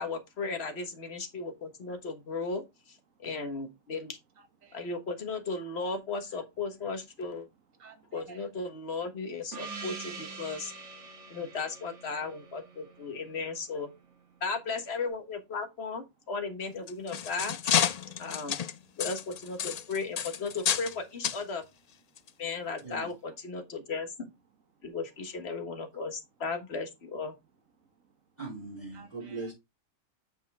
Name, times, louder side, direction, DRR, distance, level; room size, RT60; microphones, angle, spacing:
voice 1, 0.0-4.2 4.7-7.5 8.1-10.7 11.3-13.9 14.4-17.8 18.2-18.6 19.0-21.7 22.4-24.3 24.8-27.4, left 4 dB, 55° left, 1.6 m, -36 dB
voice 2, 4.4-4.9 7.7-8.5 9.6-9.8 11.0-11.4 13.1-13.2 18.0-18.4 18.7-19.0 22.1-22.4 24.7-25.0 27.8-28.4 28.9-29.5, right 5 dB, 85° right, 1.8 m, -58 dB
Gong, 9.5-13.8, right 4 dB, 60° right, 1.6 m, -44 dB
sound 1, 16.7-20.9 21.2-21.4 22.2-22.3 22.8-22.9, left 8 dB, 85° left, 0.3 m, -30 dB
voice 3, 22.8-23.1 28.4-29.5, right 3 dB, 30° right, 4.0 m, -40 dB
7.8 x 5.5 x 3.5 m
omnidirectional pair, 1.3 m